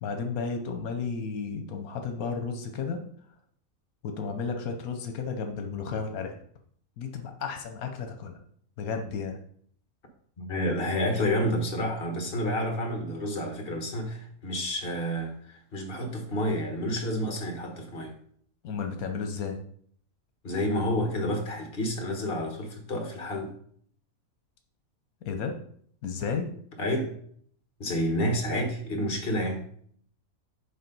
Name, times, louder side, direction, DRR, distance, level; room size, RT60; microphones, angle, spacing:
voice 1, 0.0-3.0 4.0-6.4 7.0-8.4 8.8-9.4 18.6-19.6 25.3-25.5 26.0-26.5, left 5 dB, 85° left, 5 dB, 1.2 m, -33 dB
voice 2, 10.4-18.1 20.4-23.5 26.8-27.2 27.8-29.6, equal, 40° left, 3 dB, 1.4 m, -29 dB
6.8 x 4.0 x 5.3 m, 0.62 s
omnidirectional pair, 1.5 m